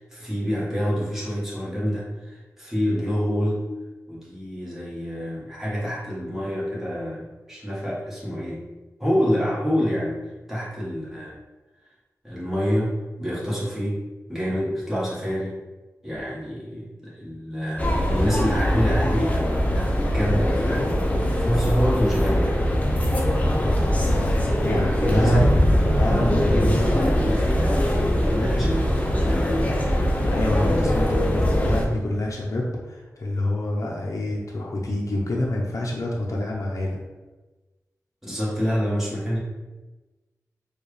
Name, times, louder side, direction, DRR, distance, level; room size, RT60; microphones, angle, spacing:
voice 1, 0.0-3.7 4.1-8.6 9.0-11.4 12.2-14.0 14.3-15.6 16.0-21.1 21.4-22.6 24.6-25.4 26.5-29.6 38.2-39.4, equal, 5° right, -7 dB, 1.5 m, -27 dB
sound 1, 17.8-31.9, equal, 20° left, 0.7 m, -22 dB
voice 2, 24.6-25.4 25.9-27.2 30.0-37.0, left 1 dB, 55° left, -3 dB, 0.7 m, -27 dB
4.4 x 2.4 x 3.2 m, 1.2 s
cardioid pair, 50°, 6 cm